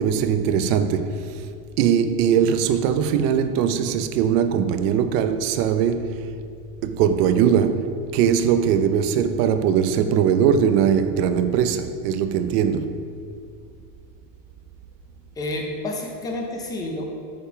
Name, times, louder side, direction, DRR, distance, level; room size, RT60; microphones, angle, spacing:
voice 1, 0.0-1.4 1.8-6.3 6.8-13.0, right 8 dB, 70° right, 0.8 m, -21 dB
voice 2, 15.4-17.0, left 1 dB, 10° left, 0.5 m, -29 dB
9.2 x 5.2 x 5.9 m
cardioid pair, 170°, 49 cm